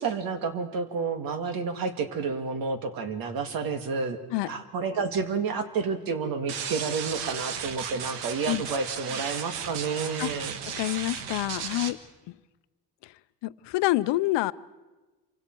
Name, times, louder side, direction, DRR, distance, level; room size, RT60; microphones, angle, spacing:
voice 1, 0.0-4.2 4.5-10.6, right 5 dB, 55° right, 8 dB, 2.0 m, -30 dB
voice 2, 4.3-4.6 8.5-8.6 10.2-10.3 10.7-12.0 12.3-12.4 13.0-13.1 13.4-14.5, left 18 dB, 85° left, 15 dB, 0.7 m, -27 dB
sound 1, 6.5-11.9, right 7 dB, 85° right, 1.6 m, -35 dB
27.0 x 24.5 x 4.6 m, 1.2 s
cardioid pair, 180°, 41 cm